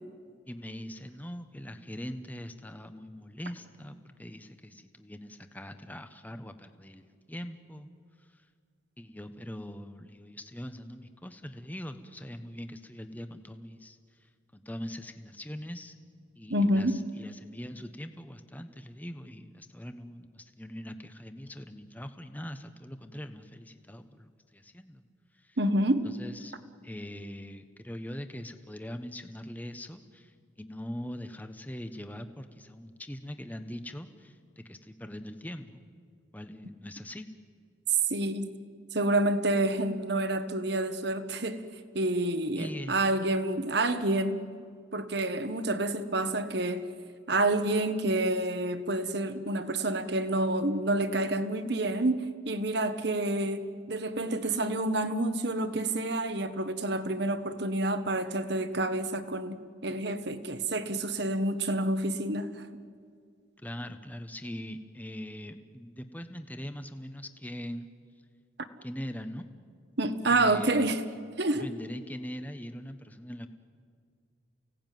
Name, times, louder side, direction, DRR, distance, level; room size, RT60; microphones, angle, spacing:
voice 1, 0.5-7.9 8.3-8.4 9.0-14.0 14.5-16.0 16.4-25.0 25.4-25.6 26.0-26.6 26.8-35.9 36.3-37.3 42.5-43.0 63.6-67.9 68.8-69.5 70.3-70.9 71.5-73.5, equal, 10° left, 8 dB, 1.0 m, -42 dB
voice 2, 16.5-16.9 25.6-26.1 38.1-38.5 38.9-41.6 41.9-44.4 44.9-46.9 47.3-62.7 70.0-71.0 71.4-71.6, right 2 dB, 55° right, 10 dB, 1.4 m, -28 dB
29.5 x 17.5 x 9.3 m, 2.1 s
head